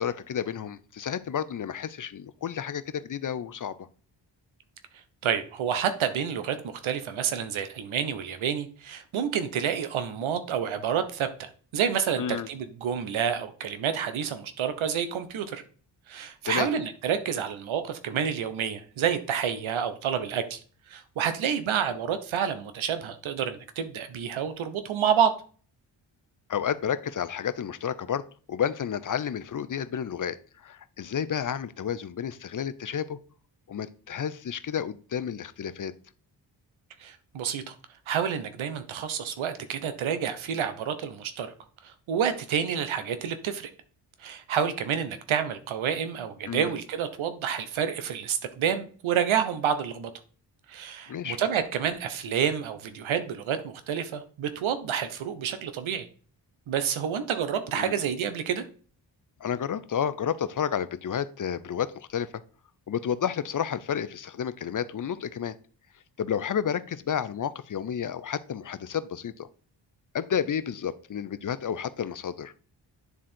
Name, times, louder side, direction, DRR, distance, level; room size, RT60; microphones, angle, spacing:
voice 1, 0.0-3.9 12.2-12.5 16.4-16.7 26.5-33.2 33.7-35.9 46.5-46.7 51.1-51.4 57.7-58.0 59.4-62.4 62.9-65.6 66.2-69.5 70.1-72.5, left 8 dB, 40° left, 15 dB, 0.7 m, -31 dB
voice 2, 5.2-15.6 16.1-20.6 20.9-25.3 37.0-37.7 38.1-41.5 41.8-43.7 44.2-50.1 50.7-56.1 56.7-58.6, right 8 dB, 75° right, 10 dB, 1.1 m, -29 dB
9.6 x 3.7 x 4.4 m, 0.41 s
supercardioid pair, 55°, 47 cm